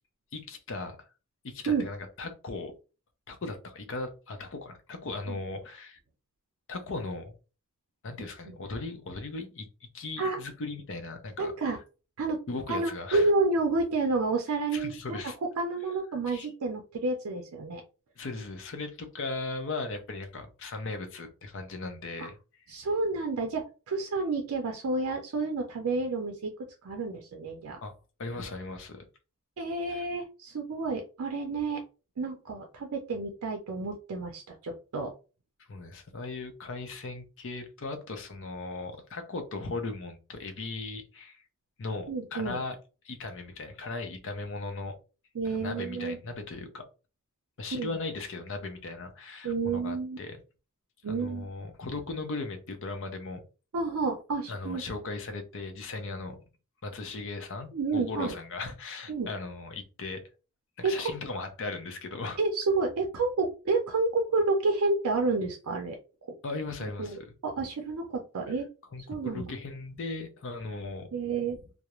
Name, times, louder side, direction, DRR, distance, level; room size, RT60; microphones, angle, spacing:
voice 1, 0.3-1.0 1.4-2.7 3.3-6.0 6.7-7.3 8.0-11.5 12.5-13.3 14.7-15.4 16.3-16.5 18.2-22.4 27.8-27.9 28.2-29.1 29.9-30.0 35.7-41.4 41.8-42.8 43.0-44.9 45.5-46.8 47.6-50.4 51.1-53.4 54.5-56.4 56.8-60.2 60.8-62.4 66.4-67.2 68.9-71.1, left 3 dB, 60° left, 0.6 m, -37 dB
voice 2, 11.4-11.8 12.2-12.4 12.7-17.8 22.2-22.3 22.7-26.5 26.8-27.8 29.6-31.8 32.2-35.1 42.1-42.6 45.3-46.2 47.7-48.0 49.4-50.2 51.0-51.5 53.7-54.8 57.7-58.3 59.1-59.3 60.8-61.1 62.4-66.0 66.8-68.7 69.1-69.5 71.1-71.6, right 3 dB, 75° right, 0.5 m, -30 dB
2.4 x 2.0 x 2.9 m
head